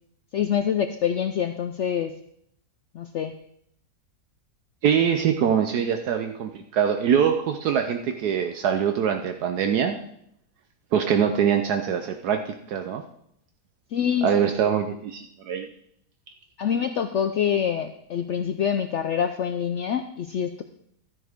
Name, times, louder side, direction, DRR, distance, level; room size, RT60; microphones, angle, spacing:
voice 1, 0.3-2.1 2.9-3.3 13.9-14.3 16.6-20.6, left 8 dB, 75° left, 8 dB, 0.6 m, -25 dB
voice 2, 4.8-10.0 10.9-13.0 14.2-15.7, right 8 dB, 70° right, 6 dB, 1.2 m, -23 dB
12.0 x 9.9 x 3.5 m, 0.72 s
omnidirectional pair, 1.8 m